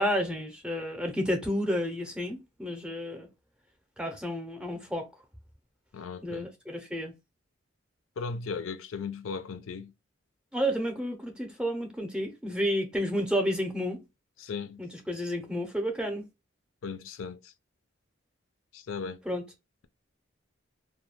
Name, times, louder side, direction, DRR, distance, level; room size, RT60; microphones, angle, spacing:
voice 1, 0.0-3.3 4.0-5.1 6.2-7.1 10.5-14.0 14.8-16.3 19.3-19.4, equal, 5° right, 0.5 m, -31 dB
voice 2, 5.9-6.5 8.2-9.9 14.4-14.8 16.8-17.5 18.7-19.2, left 5 dB, 80° left, 0.4 m, -37 dB
2.3 x 2.1 x 3.2 m
head